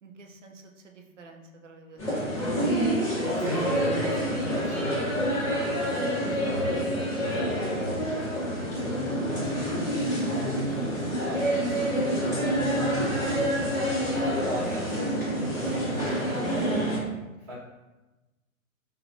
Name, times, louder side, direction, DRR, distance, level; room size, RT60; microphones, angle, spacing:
voice 1, 0.0-2.5 5.5-5.7 14.4-14.5 15.6-15.8 16.3-16.7, right 4 dB, 60° right, 3 dB, 0.6 m, -48 dB
sound 1, 2.0-17.0, equal, 5° left, 0.6 m, -27 dB
voice 2, 3.2-9.0 9.9-12.2 14.1-14.8 15.7-16.6 17.4-17.5, equal, 40° right, -9 dB, 1.1 m, -40 dB
4.6 x 2.2 x 2.7 m, 1.1 s
figure-of-eight pair, 120°, 42 cm